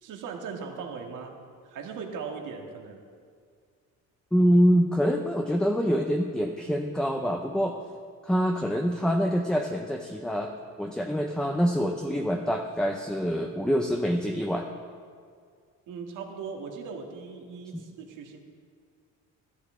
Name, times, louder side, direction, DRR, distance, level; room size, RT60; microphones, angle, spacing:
voice 1, 0.0-1.4 1.6-3.0 15.9-18.4, right 5 dB, 80° right, 2 dB, 1.8 m, -38 dB
voice 2, 4.3-7.8 8.2-10.5 10.8-14.7, equal, 5° left, 3 dB, 0.7 m, -25 dB
13.5 x 13.0 x 3.8 m, 2.1 s
cardioid pair, 120°, 31 cm